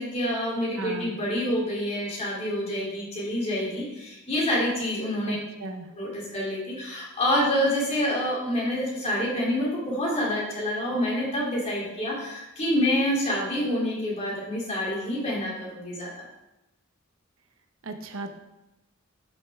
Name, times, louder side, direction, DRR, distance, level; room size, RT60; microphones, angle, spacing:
voice 1, 0.0-5.4 5.9-16.1, equal, 30° left, -5 dB, 3.3 m, -27 dB
voice 2, 0.8-1.2 5.3-5.9 17.8-18.3, right 2 dB, 75° right, 7 dB, 0.9 m, -36 dB
12.0 x 6.4 x 3.6 m, 0.96 s
head